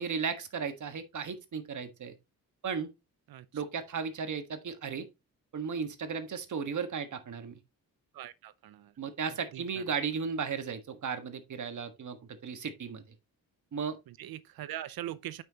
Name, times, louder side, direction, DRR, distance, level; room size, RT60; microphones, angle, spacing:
voice 1, 0.0-2.1 2.6-2.9 3.5-5.1 5.5-7.6 9.0-12.2 12.4-13.0 13.7-14.0, right 6 dB, 55° right, 1.5 m, -35 dB
voice 2, 3.3-3.6 8.1-9.0 9.5-9.8 14.1-15.4, right 12 dB, 80° right, 0.7 m, -42 dB
9.0 x 6.1 x 2.9 m
cardioid pair, 110°, 36 cm